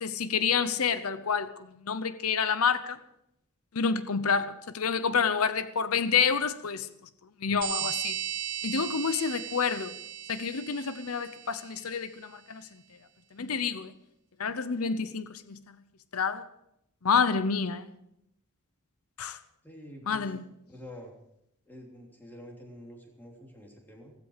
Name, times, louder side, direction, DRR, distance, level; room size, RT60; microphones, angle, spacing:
voice 1, 0.0-3.0 3.7-6.9 7.4-8.2 8.6-9.9 10.3-12.7 13.3-13.9 14.4-15.6 16.1-16.4 17.0-17.9 19.2-19.4 20.1-20.4, left 6 dB, 90° left, 0.8 m, -28 dB
sound 1, 7.6-11.9, right 10 dB, 90° right, 1.5 m, -36 dB
voice 2, 19.6-20.3 20.7-21.1 21.6-24.1, equal, 10° left, 3.3 m, -47 dB
16.5 x 15.5 x 4.9 m
head